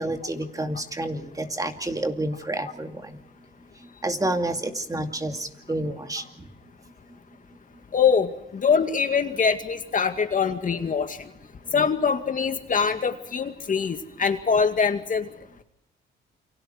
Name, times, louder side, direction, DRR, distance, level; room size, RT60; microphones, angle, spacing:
voice 1, 0.0-3.2 4.0-6.2 11.7-11.9, right 1 dB, 15° right, 5 dB, 2.5 m, -29 dB
voice 2, 7.9-11.2 11.7-15.3, left 6 dB, 40° left, 7 dB, 2.2 m, -23 dB
29.0 x 25.0 x 4.7 m, 0.81 s
cardioid pair, 90°, 20 cm